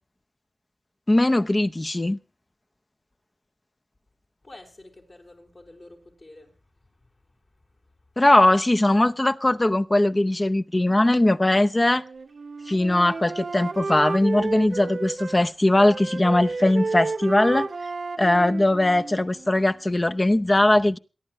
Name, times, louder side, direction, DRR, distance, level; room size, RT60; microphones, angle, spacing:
voice 1, 1.1-2.2 8.2-12.0 12.7-17.7 18.2-21.0, left 1 dB, 30° left, 0.7 m, -20 dB
voice 2, 4.4-8.2, left 2 dB, 55° left, 4.7 m, -50 dB
Wind instrument woodwind instrument, 11.9-15.4 15.8-19.8, right 3 dB, 80° right, 0.9 m, -32 dB
27.5 x 11.0 x 3.1 m
wide cardioid pair, 55°, 0 cm